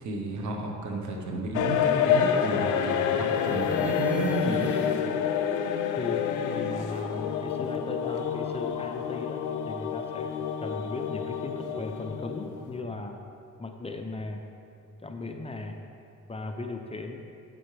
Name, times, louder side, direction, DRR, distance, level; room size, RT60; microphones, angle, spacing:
voice 1, 0.0-4.7, right 2 dB, 70° right, 1 dB, 1.2 m, -32 dB
sound 1, 1.5-12.8, left 8 dB, 85° left, 0.5 m, -28 dB
sound 2, 1.5-5.1, right 2 dB, 5° right, 1.5 m, -45 dB
voice 2, 6.0-13.2 13.6-14.4 15.0-15.8 16.3-17.2, left 3 dB, 20° left, 4 dB, 0.6 m, -37 dB
9.1 x 7.6 x 3.4 m, 2.5 s
cardioid pair, 90°, 30 cm